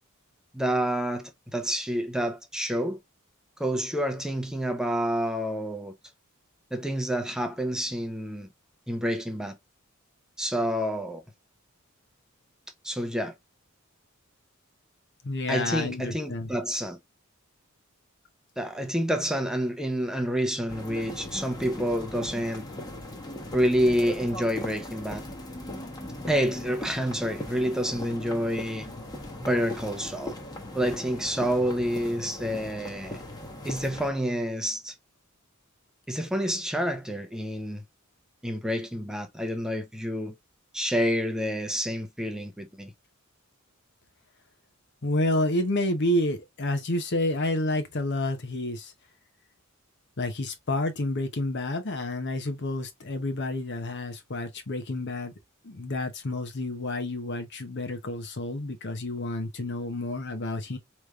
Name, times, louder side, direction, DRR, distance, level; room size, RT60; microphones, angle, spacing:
voice 1, 0.5-3.0 3.6-5.9 6.7-8.5 8.9-9.6 10.4-11.2 12.8-13.3 15.5-17.0 18.6-22.6 23.5-25.2 26.3-28.9 29.4-30.4 30.7-33.2 33.6-34.9 36.1-37.8 38.4-40.3 40.7-42.9, equal, 5° right, 0.7 m, -28 dB
voice 2, 15.2-16.5 45.0-48.9 50.2-55.3 55.6-60.8, left 1 dB, 55° left, 0.9 m, -29 dB
sound 1, 20.7-34.1, left 1 dB, 20° left, 1.1 m, -39 dB
4.9 x 3.2 x 2.4 m
head